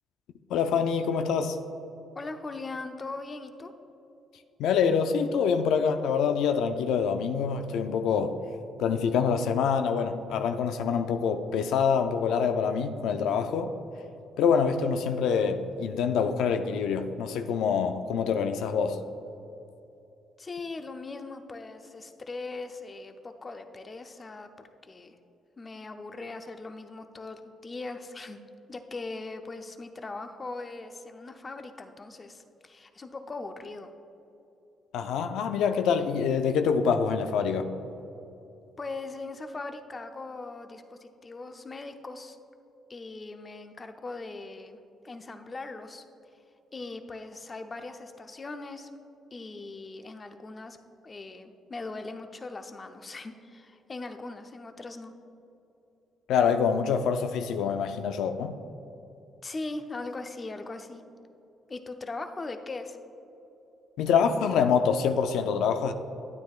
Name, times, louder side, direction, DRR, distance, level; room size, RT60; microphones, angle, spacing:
voice 1, 0.5-1.6 4.6-8.4 8.8-13.7 14.4-19.0 34.9-37.7 56.3-58.6 64.0-65.9, left 6 dB, 85° left, 7 dB, 0.4 m, -26 dB
voice 2, 2.1-3.7 20.4-25.1 25.6-28.4 28.7-33.9 38.8-42.4 42.9-44.8 45.0-46.0 46.7-48.9 49.3-50.8 51.0-55.1 59.4-61.0 61.7-63.0, left 3 dB, 30° left, 7 dB, 0.6 m, -40 dB
12.0 x 9.2 x 2.4 m, 2.9 s
cardioid pair, 90°, 0 cm